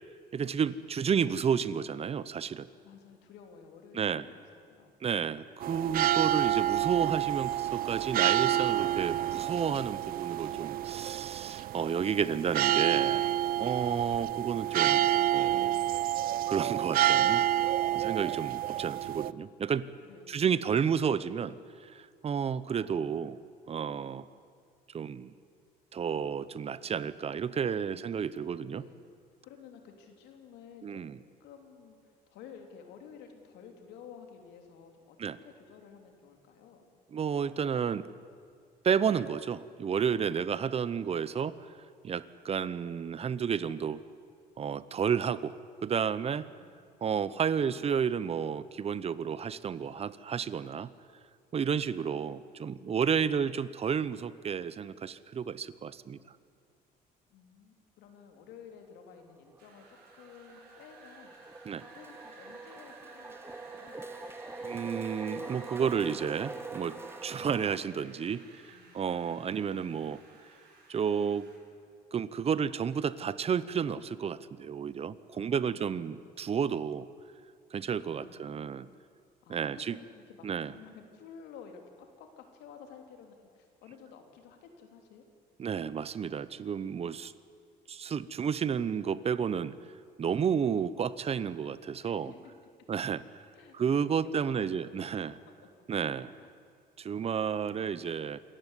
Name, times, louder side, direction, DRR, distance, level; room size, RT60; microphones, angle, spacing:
voice 1, 0.3-2.7 3.9-4.3 5.0-13.3 13.6-15.8 16.5-17.5 17.9-19.9 20.3-21.6 21.8-23.4 23.7-24.3 24.9-25.3 25.9-28.8 30.8-31.2 35.2-35.4 37.1-38.1 38.8-41.6 42.0-44.0 44.6-45.5 45.8-46.5 47.0-50.9 51.5-56.2 61.6-61.8 64.6-70.2 70.9-71.5 72.1-77.1 77.7-78.9 79.5-80.0 80.4-80.7 85.6-87.3 87.9-89.7 90.2-92.3 92.9-93.2 93.7-95.4 95.9-96.3 97.0-98.4, right 7 dB, 35° right, 17 dB, 0.8 m, -31 dB
voice 2, 2.8-4.9 17.8-18.3 20.0-20.5 27.8-28.4 28.8-29.1 29.4-31.0 31.4-36.8 46.6-47.2 57.3-61.7 61.9-64.0 68.7-69.4 75.3-76.2 78.2-78.9 79.4-85.3 92.0-92.4 93.5-95.5 96.4-96.5 97.7-98.2, left 7 dB, 90° left, 5 dB, 3.3 m, -53 dB
sound 1, 5.6-19.3, right 12 dB, 60° right, 0.5 m, -28 dB
sound 2, 59.1-59.2 59.6-67.8, right 3 dB, 15° right, 0.9 m, -44 dB
Wind, 59.6-71.6, right 3 dB, 75° right, 7.3 m, -55 dB
26.5 x 14.5 x 9.9 m, 2.2 s
cardioid pair, 110°, 17 cm